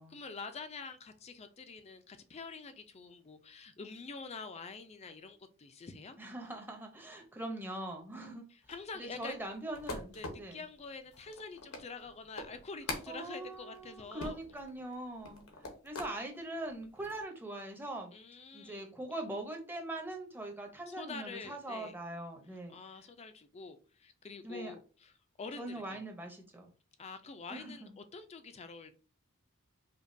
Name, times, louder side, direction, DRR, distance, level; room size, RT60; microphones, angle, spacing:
voice 1, 0.1-6.2 8.5-9.4 10.1-14.4 18.1-18.9 20.9-21.9 22.7-25.1 25.4-26.0 27.0-28.9, left 4 dB, 30° left, 10 dB, 0.4 m, -46 dB
voice 2, 6.2-8.5 8.9-10.6 13.1-15.4 15.8-18.1 18.5-22.8 24.4-24.7 25.6-26.7 27.5-28.0, right 1 dB, 10° right, 2 dB, 0.7 m, -42 dB
sound 1, 8.6-16.2 16.7-17.2, left 2 dB, 80° left, 0.9 m, -45 dB
5.0 x 2.2 x 2.6 m, 0.38 s
head